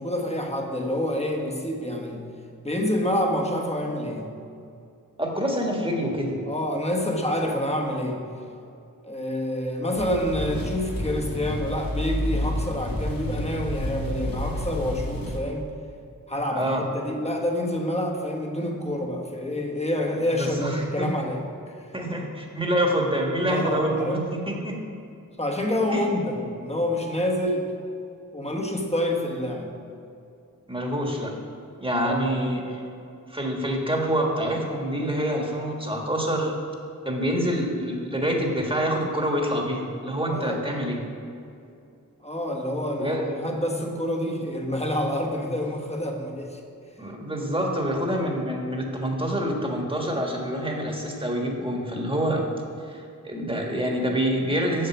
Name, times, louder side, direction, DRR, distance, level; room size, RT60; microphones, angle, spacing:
voice 1, 0.0-2.3 2.6-4.3 6.5-8.4 9.0-15.7 16.3-21.5 23.5-24.3 25.4-27.7 28.3-29.8 32.0-32.3 40.3-40.7 42.2-46.6, left 1 dB, 20° left, 1 dB, 1.3 m, -27 dB
voice 2, 5.2-6.4 16.5-16.8 20.4-21.1 21.9-24.8 25.9-26.1 30.7-31.3 31.8-32.8 33.3-36.5 37.0-41.0 43.0-43.6 47.0-52.4 52.9-54.9, equal, 15° right, 0 dB, 1.6 m, -26 dB
sound 1, 9.9-15.4, left 1 dB, 85° left, 1.3 m, -30 dB
7.7 x 7.2 x 6.0 m, 2.6 s
wide cardioid pair, 50°, 34 cm